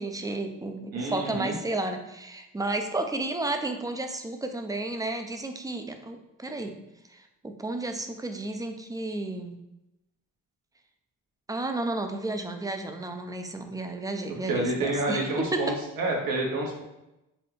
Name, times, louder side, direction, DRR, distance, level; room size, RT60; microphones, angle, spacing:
voice 1, 0.0-6.8 7.1-9.6 11.5-15.7, right 2 dB, 10° right, 5 dB, 0.4 m, -32 dB
voice 2, 0.9-1.5 14.4-16.8, right 2 dB, 80° right, -1 dB, 1.0 m, -28 dB
4.1 x 2.2 x 3.2 m, 0.92 s
cardioid pair, 75°, 34 cm